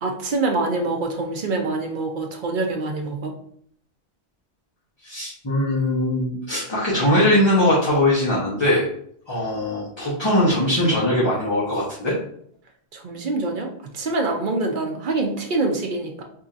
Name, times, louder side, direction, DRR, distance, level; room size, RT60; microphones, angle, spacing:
voice 1, 0.0-3.3 12.9-13.7 13.9-16.2, right 3 dB, 55° right, 2 dB, 0.8 m, -25 dB
voice 2, 5.0-8.9 9.3-12.2, left 1 dB, 25° left, -7 dB, 0.9 m, -21 dB
4.6 x 2.7 x 2.5 m, 0.63 s
omnidirectional pair, 1.1 m